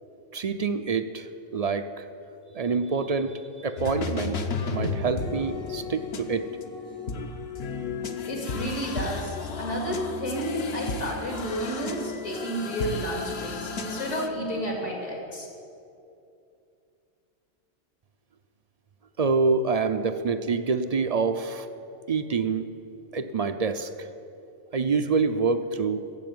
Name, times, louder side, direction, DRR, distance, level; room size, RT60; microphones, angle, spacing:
voice 1, 0.3-2.1 2.5-4.4 4.7-6.5 19.2-21.7 22.1-22.7 23.1-24.1 24.7-26.0, right 4 dB, 45° right, 9 dB, 0.5 m, -26 dB
sound 1, 3.8-14.3, left 4 dB, 60° left, 1.1 m, -33 dB
voice 2, 8.3-15.5, equal, 75° left, -1 dB, 3.0 m, -31 dB
15.0 x 7.7 x 9.4 m, 2.6 s
omnidirectional pair, 1.3 m